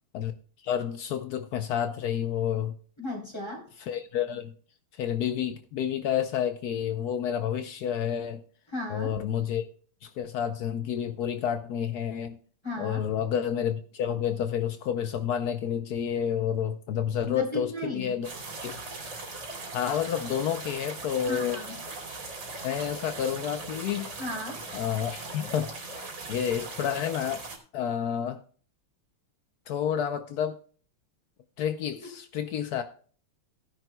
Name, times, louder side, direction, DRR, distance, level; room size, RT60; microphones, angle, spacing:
voice 1, 0.6-2.7 3.8-4.5 4.9-8.4 8.9-9.7 10.0-12.4 12.8-18.3 18.6-18.8 19.7-21.6 22.6-24.1 24.7-25.8 26.3-27.4 27.7-28.4 29.7-30.6 31.6-32.8, left 9 dB, 85° left, 8 dB, 0.8 m, -29 dB
voice 2, 3.0-3.6 8.7-9.1 12.6-13.0 17.2-18.1 21.3-21.8 24.2-24.6, left 1 dB, 10° left, -2 dB, 3.4 m, -35 dB
sound 1, 18.2-27.6, right 3 dB, 60° right, 3.2 m, -39 dB
16.5 x 10.5 x 2.2 m, 0.43 s
omnidirectional pair, 2.4 m